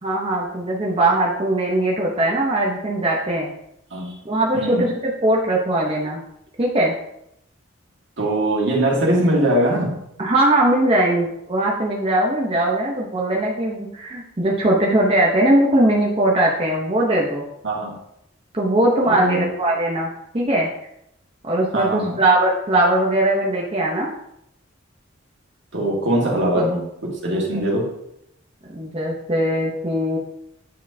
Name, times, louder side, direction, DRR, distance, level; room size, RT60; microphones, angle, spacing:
voice 1, 0.0-3.5 4.2-6.2 6.6-6.9 10.2-17.4 18.5-20.7 21.4-24.1 26.3-26.6 28.7-30.2, right 1 dB, 30° right, -3 dB, 0.8 m, -20 dB
voice 2, 4.5-4.9 8.2-10.1 17.6-18.0 19.1-19.5 21.7-22.2 25.7-27.9, right 1 dB, 65° right, -3 dB, 1.8 m, -21 dB
9.4 x 4.4 x 2.7 m, 0.78 s
head